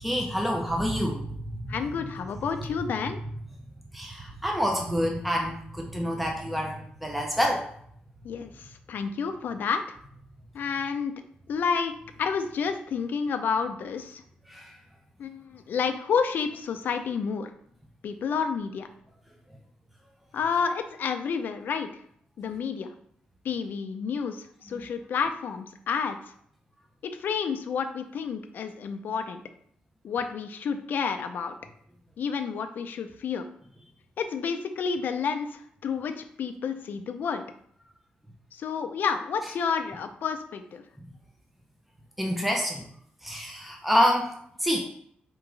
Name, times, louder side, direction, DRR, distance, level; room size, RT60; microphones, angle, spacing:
voice 1, 0.0-1.3 3.9-7.7 14.5-14.8 42.2-42.8 43.2-44.8, equal, ahead, 1 dB, 0.6 m, -27 dB
voice 2, 1.7-3.2 8.2-10.0 10.5-11.1 11.5-14.2 15.2-17.5 18.0-18.9 20.3-21.9 22.4-22.9 23.4-26.2 27.0-29.4 30.0-31.5 32.2-33.4 34.2-37.4 38.5-40.8, left 6 dB, 70° left, 7 dB, 0.5 m, -30 dB
4.6 x 3.0 x 3.8 m, 0.65 s
wide cardioid pair, 145°, 3 cm